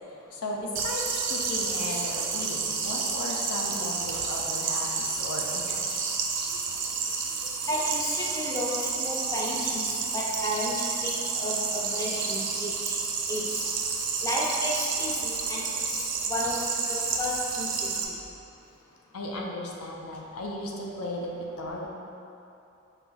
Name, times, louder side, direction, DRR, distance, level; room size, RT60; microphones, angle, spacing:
voice 1, 0.3-6.0 19.1-21.9, left 1 dB, 90° left, -1 dB, 0.6 m, -35 dB
sound 1, 0.8-18.0, right 5 dB, 55° right, 0.4 m, -30 dB
voice 2, 7.7-13.0 13.3-13.7 14.2-15.6 15.9-18.2, left 1 dB, 15° left, -4 dB, 0.4 m, -33 dB
5.6 x 2.4 x 3.9 m, 2.8 s
head